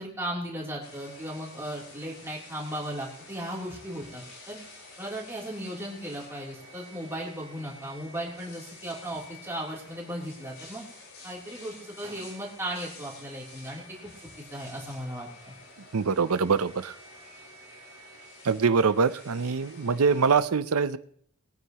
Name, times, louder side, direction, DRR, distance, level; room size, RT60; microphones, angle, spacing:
voice 1, 0.0-4.6 5.0-10.8 11.2-14.1 14.5-15.5, right 1 dB, 10° right, -4 dB, 3.2 m, -36 dB
sound 1, 0.8-20.4, left 2 dB, 75° left, 4.1 m, -49 dB
voice 2, 15.9-16.9 18.4-21.0, right 5 dB, 85° right, 15 dB, 0.6 m, -24 dB
21.5 x 9.5 x 3.0 m, 0.62 s
head